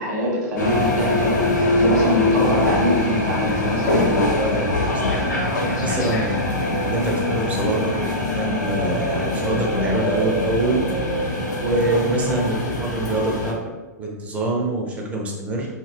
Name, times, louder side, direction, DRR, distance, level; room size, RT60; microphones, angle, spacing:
voice 1, 0.0-4.6, equal, 70° right, -3 dB, 1.2 m, -24 dB
sound 1, 0.6-13.5, left 1 dB, 80° left, 0.7 m, -22 dB
voice 2, 4.2-4.6 5.8-8.1 8.4-10.8 11.6-13.6 14.0-15.7, right 2 dB, 15° right, -1 dB, 0.5 m, -25 dB
2.8 x 2.8 x 2.4 m, 1.2 s
figure-of-eight pair, 105°, 10 cm